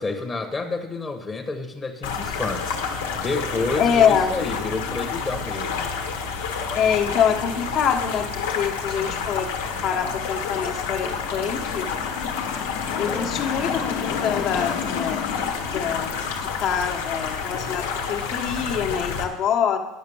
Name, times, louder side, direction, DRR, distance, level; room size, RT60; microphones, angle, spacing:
voice 1, 0.0-5.9 13.0-13.3, left 3 dB, 20° left, 6 dB, 1.2 m, -30 dB
sound 1, 2.0-19.2, left 6 dB, 90° left, 1.4 m, -29 dB
voice 2, 3.8-4.3 6.7-9.5 9.8-11.8 13.0-15.2 15.7-16.1 16.6-19.8, left 8 dB, 50° left, 3 dB, 1.3 m, -24 dB
sound 2, 9.2-16.6, left 7 dB, 70° left, 1.2 m, -34 dB
10.5 x 5.9 x 7.1 m, 1.0 s
supercardioid pair, 105°, 0 cm